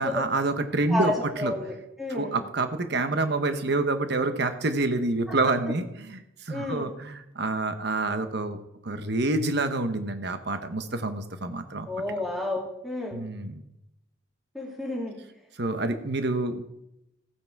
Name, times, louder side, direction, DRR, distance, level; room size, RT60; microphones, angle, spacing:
voice 1, 0.0-1.5 2.1-11.9 13.1-13.6 15.6-16.7, right 2 dB, 55° right, 8 dB, 1.1 m, -27 dB
voice 2, 0.9-2.4 5.3-5.4 6.5-6.9 11.9-13.2 14.5-15.1, left 1 dB, ahead, -2 dB, 2.6 m, -31 dB
15.5 x 9.4 x 4.7 m, 0.86 s
head